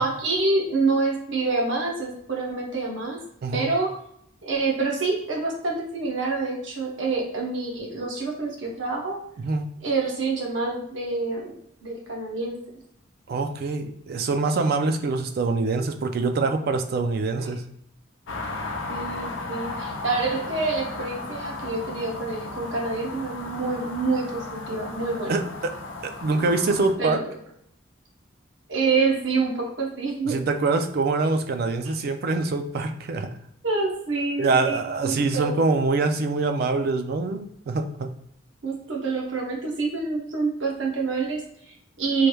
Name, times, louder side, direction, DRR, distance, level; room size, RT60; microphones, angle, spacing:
voice 1, 0.0-3.2 3.5-3.9 4.4-9.2 9.8-11.6 11.8-12.6 18.9-25.4 27.0-27.2 28.7-30.4 33.6-35.5 38.6-42.3, right 3 dB, 70° right, -1 dB, 0.8 m, -27 dB
voice 2, 13.3-17.7 25.3-25.7 26.0-27.2 30.3-33.3 34.4-38.1, right 3 dB, 50° right, 7 dB, 0.3 m, -24 dB
sound 1, 18.3-26.9, left 2 dB, 85° left, 0.6 m, -35 dB
3.2 x 3.1 x 2.2 m, 0.71 s
head